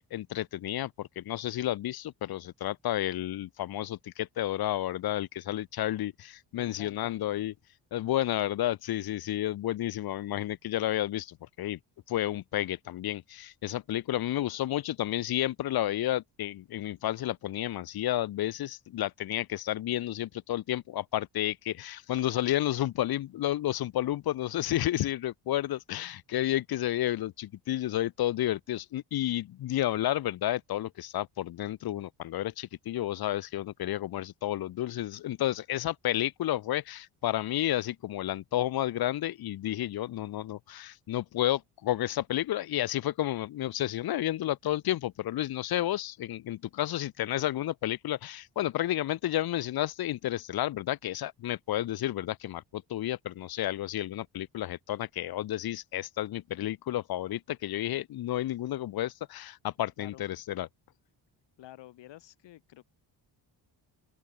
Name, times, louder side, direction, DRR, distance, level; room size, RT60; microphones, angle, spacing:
voice 1, 0.0-7.5 7.9-11.8 12.1-60.7, left 13 dB, 60° left, 0.7 m, -31 dB
voice 2, 6.5-7.1 60.0-60.2 61.6-62.8, left 14 dB, 85° left, 1.1 m, -50 dB
open air
wide cardioid pair, 165°, 42 cm